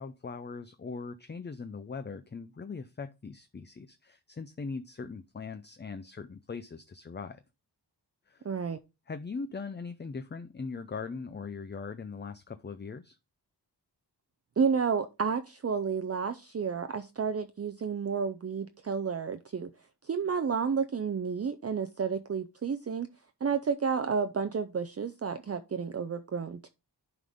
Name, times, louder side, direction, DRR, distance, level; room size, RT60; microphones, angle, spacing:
voice 1, 0.0-7.4 8.3-8.5 9.1-13.2, left 4 dB, 25° left, 0.5 m, -40 dB
voice 2, 8.4-8.8 14.6-19.7 20.0-23.1 23.4-26.7, right 6 dB, 35° right, 0.5 m, -31 dB
11.0 x 3.9 x 3.5 m
wide cardioid pair, 70°, 42 cm